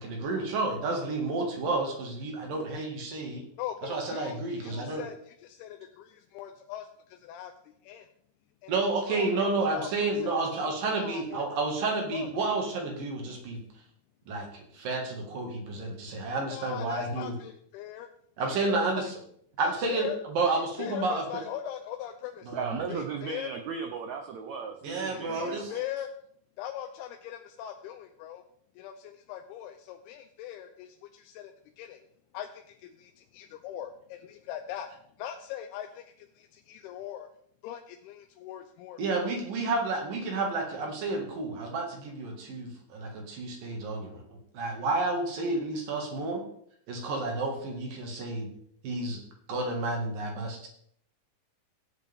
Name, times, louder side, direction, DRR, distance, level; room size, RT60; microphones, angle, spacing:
voice 1, 0.0-3.4 3.8-5.0 8.7-13.6 14.3-17.3 18.4-19.1 19.6-21.4 22.4-22.8 24.8-25.7 39.0-46.4 46.9-48.5 48.8-49.2 49.5-50.7, right 3 dB, 65° right, 1 dB, 3.6 m, -31 dB
voice 2, 3.6-8.1 8.6-9.9 10.2-10.4 10.9-11.4 11.8-12.3 16.5-18.1 18.4-19.1 19.6-20.2 20.5-22.5 22.9-23.5 25.1-26.1 26.6-28.4 28.8-32.0 32.3-34.9 35.2-37.3 37.6-39.3, left 11 dB, 90° left, 5 dB, 2.7 m, -40 dB
voice 3, 22.5-25.8, right 6 dB, 80° right, 4 dB, 1.6 m, -36 dB
16.5 x 8.5 x 3.6 m, 0.67 s
omnidirectional pair, 4.5 m